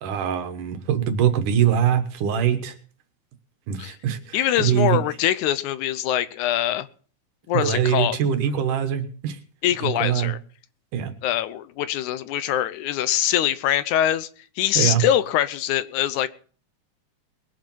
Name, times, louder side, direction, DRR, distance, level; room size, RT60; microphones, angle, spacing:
voice 1, 0.0-2.7 3.7-5.0 7.5-9.4 9.8-10.3 10.9-11.1 14.7-15.0, right 9 dB, 90° right, 8 dB, 2.9 m, -23 dB
voice 2, 4.3-6.9 7.5-8.2 9.6-10.4 11.2-14.3 14.6-16.3, left 12 dB, 80° left, 15 dB, 2.1 m, -23 dB
21.5 x 7.5 x 5.4 m, 0.42 s
omnidirectional pair, 3.5 m